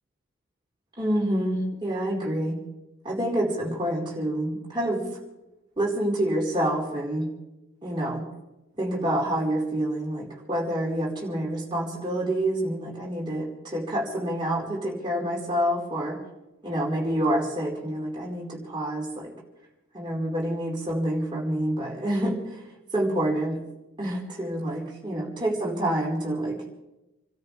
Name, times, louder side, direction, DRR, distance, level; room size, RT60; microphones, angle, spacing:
voice 1, 1.0-2.6 3.0-5.0 5.8-7.3 7.8-8.2 8.8-16.2 16.6-19.3 19.9-22.6 22.9-23.6 24.0-26.6, right 1 dB, 20° right, -4 dB, 5.1 m, -27 dB
29.5 x 13.5 x 3.6 m, 0.96 s
head